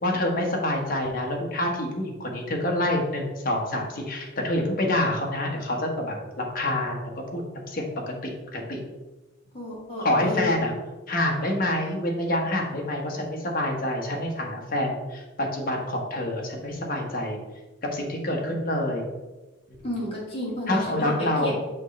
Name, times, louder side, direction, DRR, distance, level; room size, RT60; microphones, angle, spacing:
voice 1, 0.0-8.8 10.0-10.7 11.1-17.4 17.9-19.1 20.7-21.5, left 1 dB, 45° left, 0 dB, 1.2 m, -27 dB
voice 2, 9.5-10.6 19.8-21.5, left 1 dB, 30° left, -6 dB, 2.0 m, -31 dB
6.3 x 3.1 x 5.3 m, 1.2 s
head